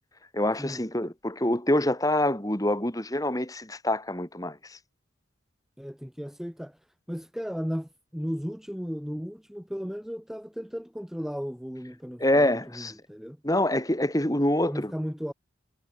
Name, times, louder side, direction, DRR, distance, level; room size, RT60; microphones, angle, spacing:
voice 1, 0.3-4.8 12.2-12.9 13.4-14.9, left 1 dB, 20° left, 2.9 m, -26 dB
voice 2, 5.8-6.8 7.1-13.4 14.7-15.3, equal, ahead, 1.6 m, -35 dB
head